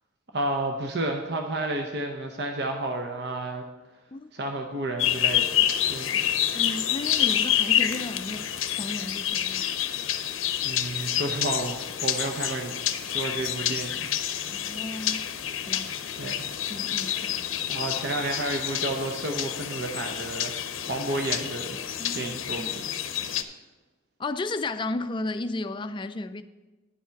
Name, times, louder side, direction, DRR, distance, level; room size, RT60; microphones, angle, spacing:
voice 1, 0.3-3.7 4.3-6.1 10.6-12.7 13.0-14.5 16.2-16.5 17.2-17.3 17.7-21.8 22.1-22.8, right 2 dB, 55° right, 0.8 m, -31 dB
sound 1, 5.0-23.4, left 11 dB, 85° left, 0.6 m, -28 dB
voice 2, 6.5-8.5 8.8-9.7 14.5-15.3 15.7-15.9 16.7-17.4 22.0-22.7 23.2-23.4 24.2-26.4, left 2 dB, 25° left, 0.4 m, -34 dB
10.5 x 7.2 x 4.6 m
head